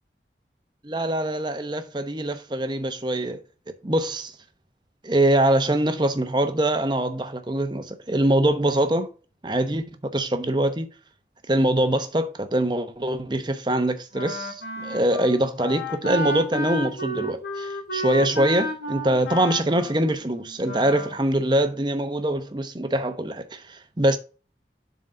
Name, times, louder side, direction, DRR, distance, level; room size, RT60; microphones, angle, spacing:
voice 1, 0.8-3.4 3.8-4.3 5.0-9.1 9.4-10.9 11.5-24.2, right 1 dB, 25° right, 0.9 m, -23 dB
Wind instrument woodwind instrument, 14.1-21.2, equal, 90° left, 3.1 m, -32 dB
7.5 x 4.1 x 5.1 m
head